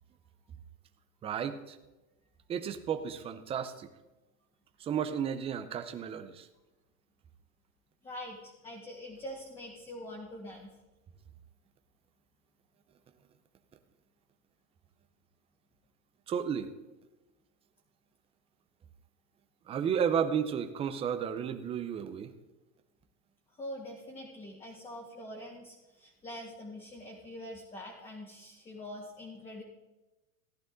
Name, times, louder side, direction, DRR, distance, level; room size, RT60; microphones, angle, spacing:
voice 1, 1.2-1.8 2.5-3.9 4.8-6.5 16.3-16.7 19.7-22.3, right 8 dB, 15° right, 8 dB, 0.6 m, -32 dB
voice 2, 8.0-10.7 23.5-29.6, left 1 dB, 10° left, -2 dB, 1.8 m, -44 dB
15.5 x 11.0 x 3.9 m, 1.1 s
supercardioid pair, 145°, 46 cm